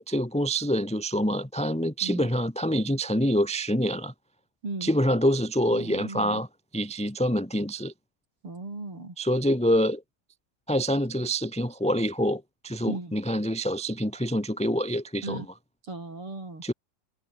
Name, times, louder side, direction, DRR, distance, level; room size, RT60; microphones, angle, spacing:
voice 1, 0.0-4.1 4.8-6.5 6.7-7.9 9.2-10.0 10.7-15.4 16.6-16.7, equal, ahead, 2.5 m, -26 dB
voice 2, 5.7-6.4 8.4-9.1 12.9-13.2 15.2-15.5 15.9-16.6, right 2 dB, 35° right, 8.2 m, -37 dB
omnidirectional pair, 4.3 m